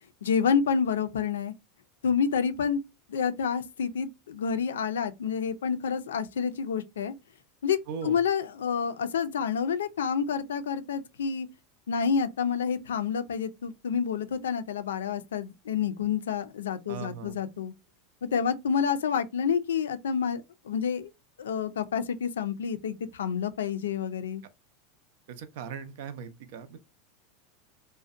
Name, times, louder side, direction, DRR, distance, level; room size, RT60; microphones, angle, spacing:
voice 1, 0.2-1.5 2.0-2.8 3.1-7.1 7.6-7.8 8.0-11.5 11.9-17.7 18.3-21.1 21.4-24.4, left 6 dB, 90° left, 0.3 m, -28 dB
voice 2, 7.9-8.2 16.9-17.4 25.3-26.8, right 6 dB, 70° right, 0.5 m, -39 dB
2.6 x 2.1 x 2.4 m
hypercardioid pair, 100°, 0 cm